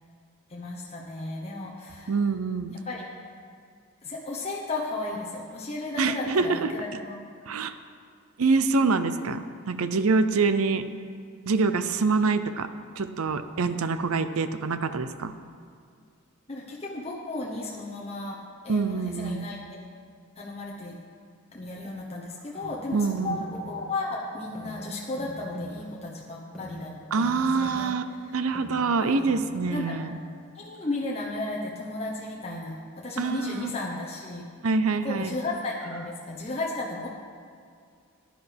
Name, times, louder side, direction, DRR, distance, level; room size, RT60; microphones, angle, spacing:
voice 1, 0.5-2.1 2.8-3.1 4.0-7.1 16.5-18.4 18.6-19.6 20.4-21.0 21.5-23.0 23.2-26.9 27.2-27.9 29.0-29.1 29.7-30.0 30.5-34.4 35.0-37.1, left 2 dB, 30° left, -4 dB, 1.0 m, -34 dB
voice 2, 2.1-2.8 6.0-6.8 7.5-7.8 8.4-10.8 11.4-12.7 13.0-15.3 18.7-19.5 22.9-23.4 27.1-30.2 33.2-33.7 34.6-35.3, right 4 dB, 85° right, 11 dB, 0.6 m, -25 dB
sound 1, 22.3-30.3, right 1 dB, ahead, 2.1 m, -44 dB
15.0 x 10.5 x 3.5 m, 2.2 s
head